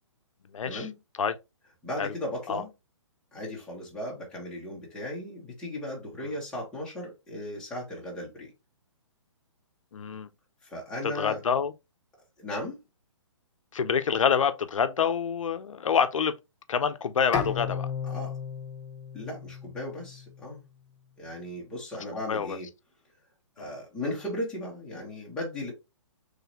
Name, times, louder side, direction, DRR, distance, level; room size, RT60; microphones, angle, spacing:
voice 1, 0.5-0.9 1.2-1.3 2.0-2.1 2.5-2.6 9.9-10.3 11.1-11.7 13.7-16.3 16.7-17.9 22.3-22.6 23.6-23.7, left 7 dB, 85° left, 0.5 m, -26 dB
voice 2, 1.8-2.7 3.3-8.5 10.6-11.4 12.4-12.8 18.0-18.4 19.1-20.6 21.2-22.7 23.6-25.7, left 1 dB, 5° left, 1.2 m, -36 dB
Bowed string instrument, 17.3-20.6, left 7 dB, 20° left, 0.9 m, -35 dB
3.9 x 3.2 x 2.8 m
hypercardioid pair, 155°, 16 cm